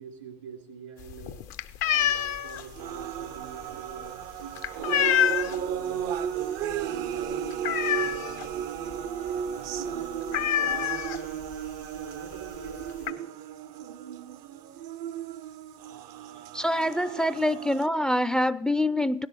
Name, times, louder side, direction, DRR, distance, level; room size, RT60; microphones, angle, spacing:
voice 1, 0.0-1.4 1.9-6.2 6.9-8.5 9.5-11.2 11.9-13.3, right 6 dB, 85° right, 2.4 m, -45 dB
sound 1, 1.0-5.7 6.1-6.4 6.7-6.8 7.2-8.5 8.9-9.0 9.3-9.5 9.8-9.9 10.3-11.5 12.3-12.4 12.7-13.1, left 11 dB, 60° left, 0.6 m, -27 dB
sound 2, 1.9-17.9, right 9 dB, 60° right, 0.5 m, -35 dB
voice 2, 16.5-19.3, left 1 dB, 5° left, 0.4 m, -25 dB
17.5 x 6.2 x 4.0 m
figure-of-eight pair, 55°, 16 cm